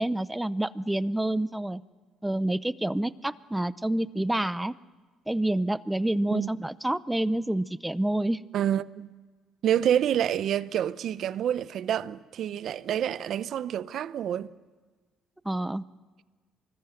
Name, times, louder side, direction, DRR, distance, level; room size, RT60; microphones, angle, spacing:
voice 1, 0.0-1.8 2.2-4.7 5.3-8.4 15.4-15.8, right 1 dB, 10° right, 0.6 m, -28 dB
voice 2, 8.5-9.1 9.6-14.5, right 10 dB, 65° right, 0.7 m, -28 dB
24.5 x 20.0 x 7.8 m
cardioid pair, 85°, 0 cm